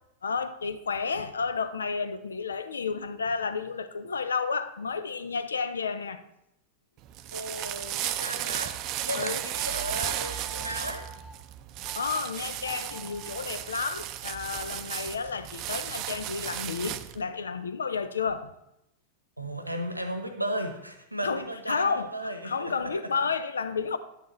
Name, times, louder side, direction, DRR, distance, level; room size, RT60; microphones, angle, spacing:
voice 1, 0.2-6.2 9.1-9.4 11.9-18.5 21.2-22.1 22.4-24.0, left 5 dB, 70° left, 0.5 m, -31 dB
sound 1, 7.0-17.2, right 12 dB, 40° right, 0.5 m, -35 dB
voice 2, 7.3-11.1 19.4-22.9, right 1 dB, 85° right, 1.0 m, -35 dB
sound 2, 9.6-11.4 11.8-12.2 12.6-13.4, left 1 dB, 10° left, 0.7 m, -47 dB
10.5 x 9.1 x 3.1 m
figure-of-eight pair, 90°, 0 cm